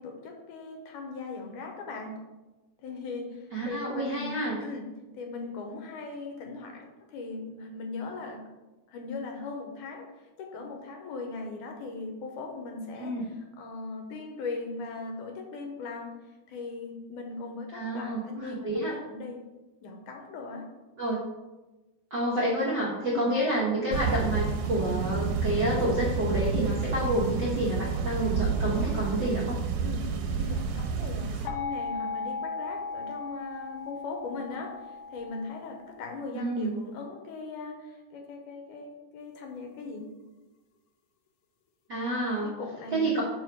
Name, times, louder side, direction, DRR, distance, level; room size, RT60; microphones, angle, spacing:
voice 1, 0.0-2.2 2.8-4.3 4.6-4.8 5.1-8.4 8.9-10.1 10.4-16.2 16.5-19.4 19.8-20.7 23.1-23.4 29.8-40.1 42.4-43.2, left 3 dB, 75° left, 2 dB, 2.4 m, -39 dB
voice 2, 3.5-4.6 13.0-13.2 17.7-18.9 21.0-21.2 22.1-29.6 36.3-36.8 41.9-42.5 42.9-43.2, right 1 dB, 60° right, -6 dB, 1.1 m, -29 dB
sound 1, 23.9-31.5, right 5 dB, 90° right, 2.4 m, -29 dB
sound 2, 31.5-36.2, left 5 dB, 90° left, 2.2 m, -37 dB
6.0 x 5.4 x 4.6 m, 1.1 s
omnidirectional pair, 3.8 m